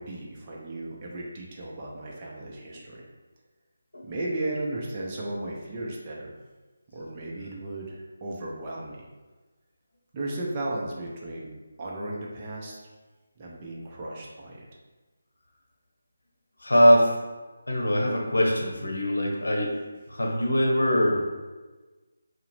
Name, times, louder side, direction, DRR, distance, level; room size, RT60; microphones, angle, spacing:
voice 1, 0.0-3.0 4.0-6.3 6.9-9.0 10.1-11.5 11.8-12.8 13.4-14.6, right 1 dB, 25° right, -4 dB, 0.5 m, -35 dB
voice 2, 16.6-17.1 17.7-19.7 20.1-21.2, equal, 65° left, -1 dB, 0.8 m, -22 dB
4.5 x 2.1 x 3.2 m, 1.3 s
figure-of-eight pair, 155°, 0 cm